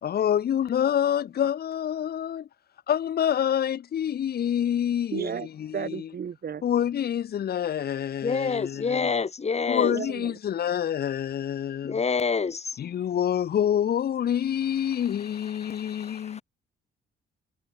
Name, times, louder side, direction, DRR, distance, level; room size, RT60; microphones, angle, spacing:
voice 1, 0.0-2.5 2.9-6.1 6.6-9.1 9.7-12.0 12.8-16.4, left 9 dB, 55° left, 0.9 m, -27 dB
voice 2, 5.1-5.5 5.7-6.6 9.8-10.3, right 7 dB, 50° right, 5.6 m, -33 dB
voice 3, 8.2-10.0 11.8-13.0 15.4-16.4, left 5 dB, 35° left, 2.2 m, -28 dB
cardioid pair, 90°, 20 cm